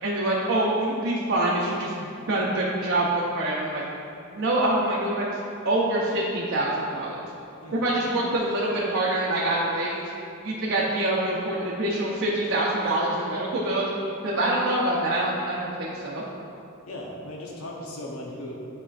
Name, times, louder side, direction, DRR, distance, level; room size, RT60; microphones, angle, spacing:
voice 1, 0.0-3.8 4.3-5.4 5.6-7.3 7.7-10.0 10.4-13.8 14.2-16.3, right 1 dB, 60° right, -6 dB, 0.8 m, -25 dB
voice 2, 16.9-18.6, left 1 dB, 80° left, -2 dB, 0.8 m, -37 dB
9.6 x 4.4 x 2.5 m, 2.6 s
head